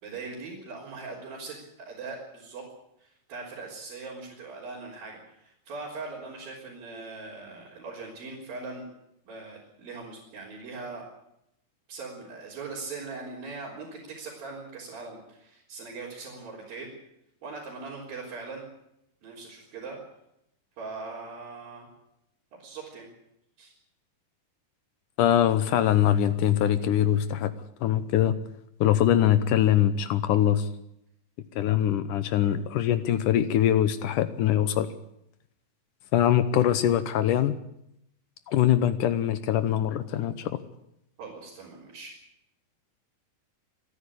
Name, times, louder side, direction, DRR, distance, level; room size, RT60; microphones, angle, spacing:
voice 1, 0.0-2.7 3.0-8.9 9.3-11.1 11.9-16.9 17.4-18.6 19.2-20.0 20.8-21.9 22.5-23.1 23.6-23.7 41.2-42.1, right 3 dB, 75° right, -6 dB, 5.7 m, -40 dB
voice 2, 25.2-27.5 27.8-28.3 28.8-30.7 31.6-34.9 36.1-37.5 38.5-40.6, left 11 dB, 70° left, 13 dB, 2.3 m, -23 dB
26.0 x 10.0 x 10.0 m, 0.79 s
omnidirectional pair, 4.1 m